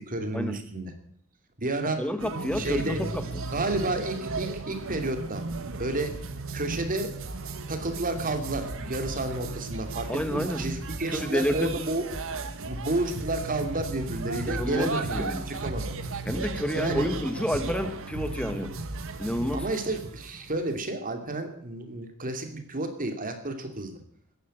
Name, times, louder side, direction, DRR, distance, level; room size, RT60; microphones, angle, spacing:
voice 1, 0.1-0.9 1.6-2.1 2.5-3.0 3.5-5.4 5.8-6.2 6.5-7.1 7.7-12.0 12.7-16.0 16.8-17.1 19.5-24.0, right 2 dB, 40° right, 6 dB, 2.7 m, -31 dB
voice 2, 2.0-3.2 10.1-10.6 11.1-11.7 14.4-15.4 16.2-18.8 19.2-19.7, equal, 5° left, 10 dB, 1.3 m, -29 dB
sound 1, 2.2-20.7, right 3 dB, 65° right, 1.7 m, -35 dB
14.5 x 11.0 x 9.0 m, 0.65 s
head